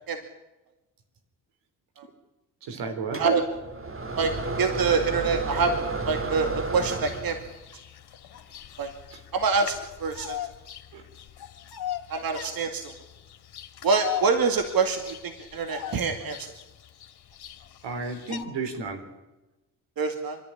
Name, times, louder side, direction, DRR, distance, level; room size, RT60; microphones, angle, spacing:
voice 1, 2.6-3.3 9.1-9.2 10.9-11.1 17.8-19.1, right 4 dB, 80° right, 7 dB, 3.6 m, -33 dB
sound 1, 3.1-7.6, right 3 dB, 30° right, 2.2 m, -32 dB
voice 2, 3.1-3.4 4.2-4.3 4.6-5.7 6.1-7.4 8.8-8.9 9.3-9.7 10.0-10.4 12.1-12.9 13.8-16.5 20.0-20.4, right 4 dB, 55° right, 5 dB, 2.3 m, -25 dB
Bird vocalization bird call bird song, 6.8-18.4, left 10 dB, 65° left, 2.2 m, -40 dB
27.0 x 11.0 x 10.0 m, 1.0 s
cardioid pair, 70°, 41 cm